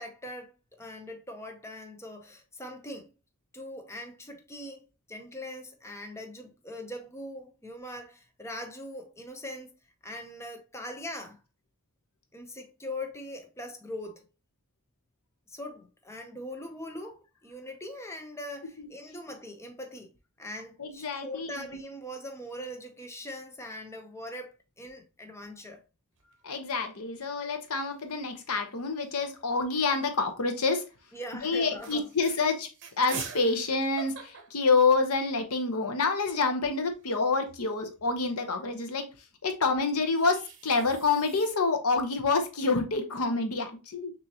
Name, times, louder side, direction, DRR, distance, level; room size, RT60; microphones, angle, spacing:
voice 1, 0.0-3.1 3.5-9.7 10.0-11.4 12.3-14.2 15.5-20.1 20.4-25.8 31.1-32.1, left 1 dB, 15° left, 0.7 m, -41 dB
voice 2, 20.8-21.8 26.4-30.8 31.4-32.7 33.0-39.0 39.4-44.1, left 4 dB, 85° left, 0.9 m, -27 dB
sound 1, 26.2-26.8 27.2-27.3 27.5-28.1 29.0-30.2 30.9-31.1 31.5-31.6 31.8-35.4 35.8-35.9 36.1-38.4 39.6-41.5, right 5 dB, 60° right, 0.9 m, -46 dB
6.2 x 2.7 x 2.8 m
head